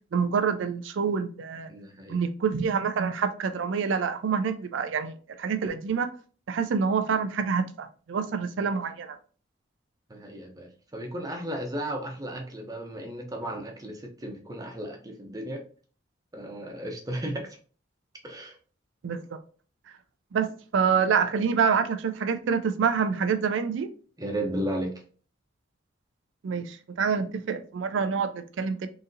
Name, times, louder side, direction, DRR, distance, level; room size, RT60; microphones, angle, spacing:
voice 1, 0.1-1.7 2.1-6.1 6.5-9.2 19.0-19.4 20.3-23.9 26.4-28.9, right 6 dB, 70° right, 10 dB, 0.4 m, -27 dB
voice 2, 1.7-2.2 10.1-15.6 16.3-17.6 18.2-18.6 24.2-25.0, right 1 dB, 20° right, 3 dB, 0.6 m, -34 dB
3.8 x 2.7 x 2.6 m, 0.40 s
head